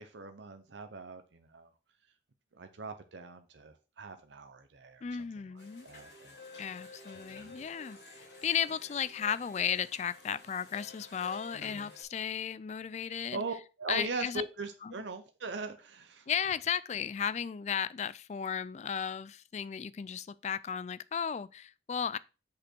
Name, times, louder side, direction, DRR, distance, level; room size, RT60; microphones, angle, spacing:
voice 1, 0.0-1.7 2.5-5.0 5.5-6.4 6.7-7.0 7.3-7.7 11.5-11.9 13.3-16.3, right 3 dB, 75° right, 0.7 m, -41 dB
voice 2, 5.0-5.9 6.6-13.4 13.9-14.4 14.8-14.9 16.3-22.2, left 8 dB, 40° left, 0.3 m, -35 dB
sound 1, 5.6-12.0, left 3 dB, 65° left, 3.7 m, -51 dB
6.7 x 5.3 x 4.4 m
head